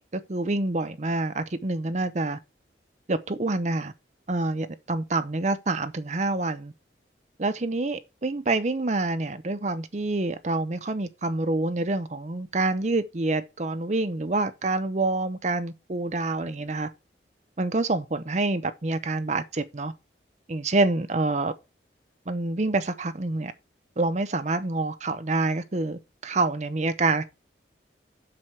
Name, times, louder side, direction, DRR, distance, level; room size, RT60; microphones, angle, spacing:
voice 1, 0.0-2.4 3.1-3.9 4.3-6.7 7.4-16.9 17.6-19.9 20.5-21.5 22.3-23.5 24.0-27.2, right 2 dB, 40° right, 0.7 m, -27 dB
7.7 x 6.3 x 5.6 m
head